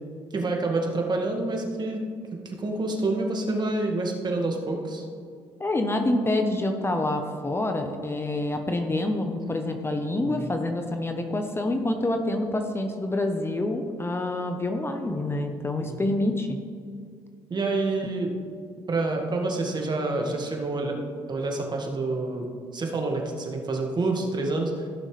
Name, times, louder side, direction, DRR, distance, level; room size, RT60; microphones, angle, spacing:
voice 1, 0.3-2.0 2.5-5.0 10.2-10.5 15.9-16.0 17.5-18.3 18.9-21.0 21.3-22.5 22.7-24.7, right 2 dB, 35° right, 1 dB, 1.9 m, -27 dB
voice 2, 5.6-16.6, left 1 dB, 20° left, 5 dB, 1.0 m, -27 dB
15.0 x 6.3 x 3.3 m, 2.2 s
supercardioid pair, 65°, 12 cm